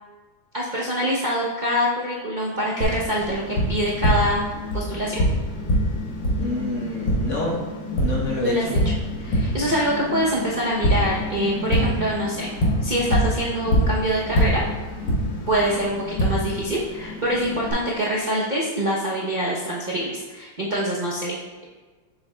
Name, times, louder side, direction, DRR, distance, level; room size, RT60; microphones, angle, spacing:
voice 1, 0.5-4.5 4.7-5.2 8.4-8.7 9.2-12.5 12.8-14.6 15.5-21.7, equal, 85° right, -6 dB, 0.4 m, -25 dB
Tap, 2.8-17.7, equal, 75° left, 2.0 m, -25 dB
voice 2, 6.4-7.6 7.9-8.8, left 1 dB, 45° left, -2 dB, 1.2 m, -27 dB
7.2 x 6.8 x 2.2 m, 1.4 s
omnidirectional pair, 2.1 m